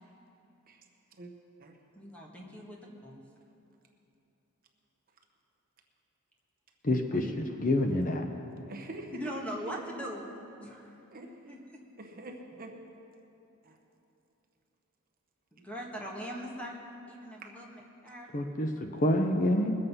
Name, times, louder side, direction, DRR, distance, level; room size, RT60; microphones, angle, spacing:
voice 1, 1.9-3.2 9.1-10.3 10.6-11.0 11.4-11.8 15.5-18.3, equal, 5° left, -2 dB, 1.7 m, -41 dB
voice 2, 6.8-8.3 18.3-19.8, left 1 dB, 40° left, 5 dB, 0.8 m, -27 dB
voice 3, 8.6-9.3 9.6-9.8 11.1-11.6 12.0-12.7 13.6-13.8 17.4-17.6, right 2 dB, 40° right, 3 dB, 1.1 m, -45 dB
21.0 x 7.8 x 5.6 m, 2.9 s
head